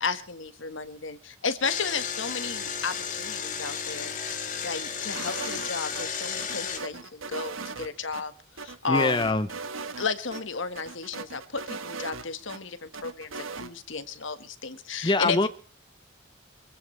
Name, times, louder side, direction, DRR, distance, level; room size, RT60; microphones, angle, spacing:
voice 1, 0.0-4.1 4.6-8.3 8.6-9.3 10.0-15.5, left 5 dB, 65° left, 1.6 m, -33 dB
Engine, 1.6-6.8, left 6 dB, 40° left, 2.7 m, -33 dB
sound 1, 5.1-6.1 6.4-8.2 8.6-10.1 10.3-10.4 10.8-12.6 12.9-13.7, right 4 dB, 80° right, 1.4 m, -38 dB
voice 2, 8.9-9.5 15.0-15.5, left 2 dB, 20° left, 0.6 m, -23 dB
24.5 x 15.5 x 3.3 m
head